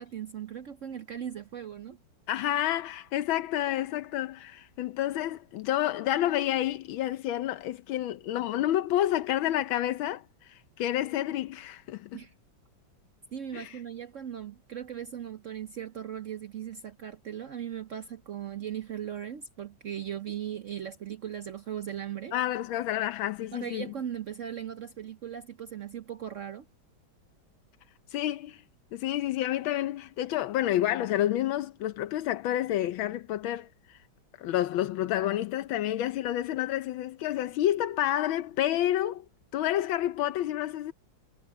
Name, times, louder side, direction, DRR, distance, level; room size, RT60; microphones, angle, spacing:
voice 1, 0.0-2.0 12.1-12.3 13.3-22.3 23.5-26.7, right 9 dB, 65° right, 0.8 m, -38 dB
voice 2, 2.3-12.2 13.5-13.8 22.3-23.8 28.1-28.6 28.9-33.7 34.4-39.2 39.5-40.9, left 13 dB, 85° left, 1.5 m, -29 dB
omnidirectional pair, 2.1 m